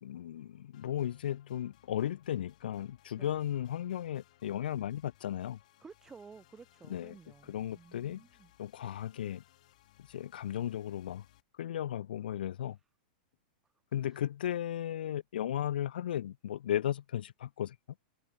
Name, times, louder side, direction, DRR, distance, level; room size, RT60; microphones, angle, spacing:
voice 1, 0.0-5.6 6.9-7.1 7.5-8.2 8.6-9.4 10.1-11.2 11.6-12.8 13.9-17.7, left 11 dB, 80° left, 1.6 m, -35 dB
sound 1, 0.7-11.4, left 15 dB, 50° left, 4.0 m, -65 dB
voice 2, 5.8-8.5 14.1-14.2, right 5 dB, 10° right, 1.1 m, -54 dB
supercardioid pair, 175°, 5 cm